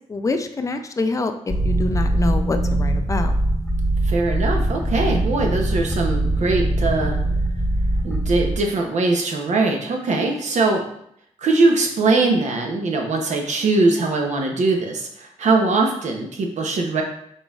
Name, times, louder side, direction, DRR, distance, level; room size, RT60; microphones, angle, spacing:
voice 1, 0.1-3.4, left 3 dB, 25° left, 7 dB, 0.4 m, -26 dB
sound 1, 1.5-8.6, right 1 dB, ahead, 1.0 m, -22 dB
voice 2, 4.0-7.2 8.0-10.8 11.4-17.0, right 3 dB, 70° right, 2 dB, 0.7 m, -21 dB
3.9 x 3.8 x 2.4 m, 0.72 s
cardioid pair, 70°, 12 cm